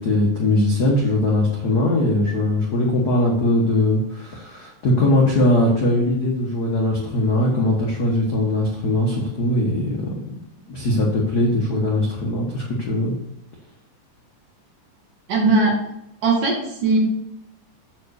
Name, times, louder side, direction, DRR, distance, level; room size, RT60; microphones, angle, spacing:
voice 1, 0.0-9.9 10.3-10.4 10.7-13.1, left 1 dB, 65° left, -3 dB, 0.9 m, -20 dB
voice 2, 15.3-15.8 16.2-17.0, right 3 dB, 65° right, -1 dB, 3.5 m, -19 dB
8.1 x 4.8 x 6.4 m, 0.83 s
omnidirectional pair, 4.0 m